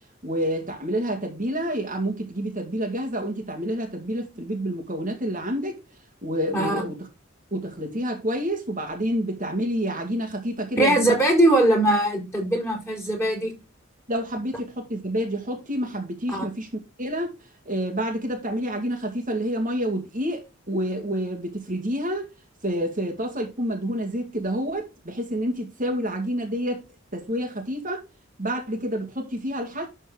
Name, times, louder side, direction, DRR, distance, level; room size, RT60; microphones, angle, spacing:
voice 1, 0.2-5.8 6.2-6.9 7.5-11.2 14.1-16.7 17.0-22.3 22.6-26.8 27.1-28.0 28.4-29.9, equal, 40° right, 2.1 m, -28 dB
voice 2, 6.5-6.8 10.8-13.5 16.3-16.5, right 1 dB, 15° left, 4.6 m, -21 dB
12.0 x 4.4 x 3.9 m
head